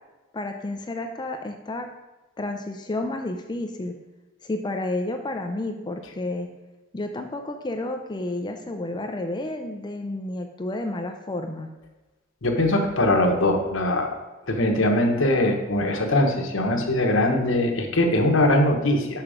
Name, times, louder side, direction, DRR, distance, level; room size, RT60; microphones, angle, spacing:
voice 1, 0.3-1.9 2.4-3.9 4.4-6.5 6.9-11.7, left 2 dB, 20° left, 5 dB, 0.5 m, -31 dB
voice 2, 12.4-14.1 14.5-19.2, left 1 dB, 75° left, 3 dB, 1.2 m, -21 dB
5.9 x 5.8 x 5.0 m, 1.1 s
head